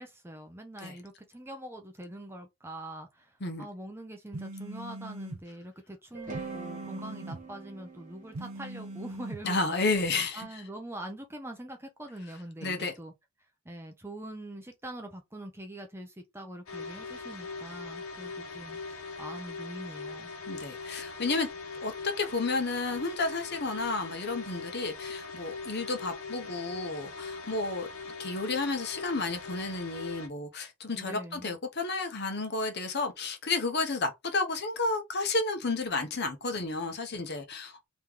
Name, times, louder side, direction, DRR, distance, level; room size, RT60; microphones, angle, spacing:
voice 1, 0.0-9.8 10.3-13.1 13.6-20.3 30.9-31.6, right 1 dB, 10° right, 0.6 m, -44 dB
sound 1, 4.3-5.4 6.3-7.4 8.3-9.4, right 2 dB, 75° right, 0.8 m, -41 dB
sound 2, 6.1-10.3, right 4 dB, 35° right, 1.1 m, -44 dB
voice 2, 9.4-10.5 12.6-12.9 20.5-21.5 21.8-27.9 28.2-37.9, left 3 dB, 45° left, 0.9 m, -31 dB
sound 3, 16.7-30.3, left 4 dB, 75° left, 1.1 m, -41 dB
3.2 x 3.0 x 3.7 m
head